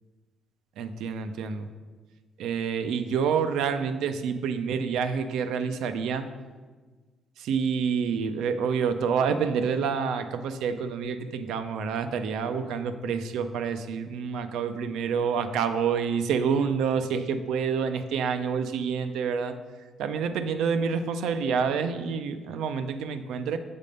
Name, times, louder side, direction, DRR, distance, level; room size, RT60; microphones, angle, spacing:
voice 1, 0.8-1.7 2.4-6.3 7.4-19.6 20.0-23.6, right 6 dB, 85° right, 9 dB, 0.4 m, -28 dB
6.6 x 3.5 x 5.2 m, 1.4 s
cardioid pair, 90°, 0 cm